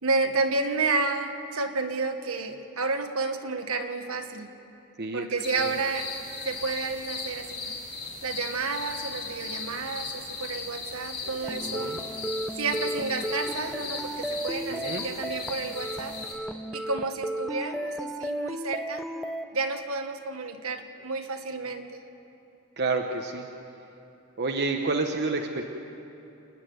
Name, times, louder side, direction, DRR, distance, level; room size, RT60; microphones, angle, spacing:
voice 1, 0.0-4.5 5.1-6.1 6.4-7.7 8.2-11.9 12.5-16.2 16.7-19.1 19.5-22.0, right 3 dB, 70° right, 5 dB, 1.5 m, -31 dB
sound 1, 5.4-16.3, left 3 dB, 45° left, 4.7 m, -37 dB
sound 2, 11.4-19.4, right 1 dB, ahead, 0.6 m, -34 dB
voice 2, 11.6-12.0 14.7-15.1 22.8-23.5 24.4-25.6, right 3 dB, 50° right, 3 dB, 1.0 m, -29 dB
29.5 x 9.9 x 9.5 m, 3.0 s
head